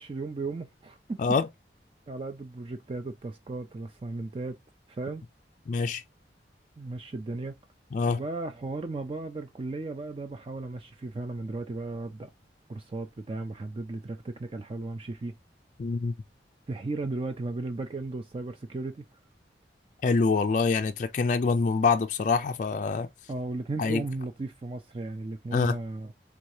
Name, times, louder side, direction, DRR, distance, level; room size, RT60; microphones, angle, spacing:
voice 1, 0.0-1.3 2.1-4.6 4.9-5.2 6.8-7.6 8.1-12.3 12.7-15.4 16.7-19.1 23.3-26.1, right 2 dB, 30° right, 0.4 m, -35 dB
voice 2, 5.7-6.0 7.9-8.2 15.8-16.1 20.0-23.1 23.8-24.0 25.5-25.8, left 4 dB, 45° left, 0.3 m, -25 dB
3.5 x 2.7 x 4.6 m
head